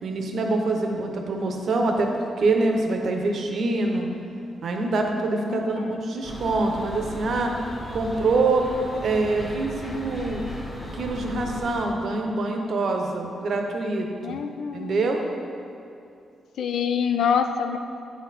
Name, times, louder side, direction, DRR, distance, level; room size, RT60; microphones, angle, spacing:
voice 1, 0.0-4.1 4.6-7.5 7.9-8.7 9.0-10.5 10.9-14.4 14.7-15.2, right 3 dB, 60° right, 2 dB, 0.7 m, -25 dB
voice 2, 5.3-6.0 14.2-15.1 16.6-17.8, left 7 dB, 85° left, 7 dB, 0.4 m, -26 dB
sound 1, 6.2-11.9, left 1 dB, 25° left, 1.1 m, -37 dB
8.5 x 4.2 x 4.1 m, 2.5 s
wide cardioid pair, 145°, 0 cm